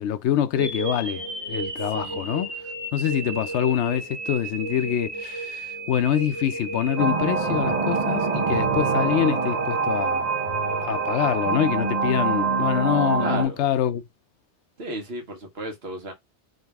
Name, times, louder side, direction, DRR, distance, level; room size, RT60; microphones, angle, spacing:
voice 1, 0.0-2.5 2.9-10.3 10.8-14.0, left 10 dB, 80° left, 0.9 m, -25 dB
sound 1, 0.6-12.7, right 3 dB, 25° right, 1.3 m, -34 dB
voice 2, 1.8-2.4 13.2-13.7 14.8-16.1, right 2 dB, 65° right, 1.4 m, -34 dB
sound 2, 7.0-13.5, right 4 dB, 40° right, 0.9 m, -25 dB
3.9 x 2.6 x 3.4 m
omnidirectional pair, 1.1 m